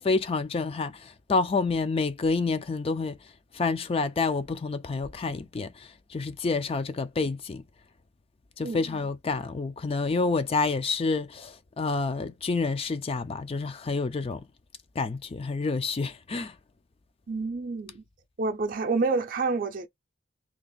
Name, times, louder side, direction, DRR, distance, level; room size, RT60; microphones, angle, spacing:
voice 1, 0.0-3.2 3.5-7.6 8.6-14.4 15.0-16.5, left 4 dB, 30° left, 0.4 m, -28 dB
voice 2, 17.3-18.0 18.4-19.9, right 3 dB, 50° right, 0.5 m, -28 dB
2.9 x 2.4 x 3.8 m
head